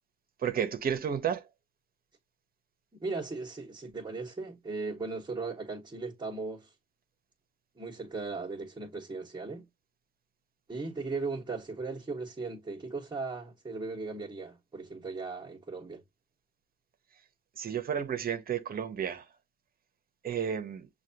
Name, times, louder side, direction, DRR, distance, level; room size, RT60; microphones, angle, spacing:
voice 1, 0.4-1.5 17.6-19.3 20.2-20.9, right 8 dB, 50° right, 0.9 m, -32 dB
voice 2, 2.9-6.7 7.8-9.7 10.7-16.0, right 3 dB, 20° right, 1.3 m, -37 dB
6.3 x 2.3 x 2.8 m
cardioid pair, 90°, 20 cm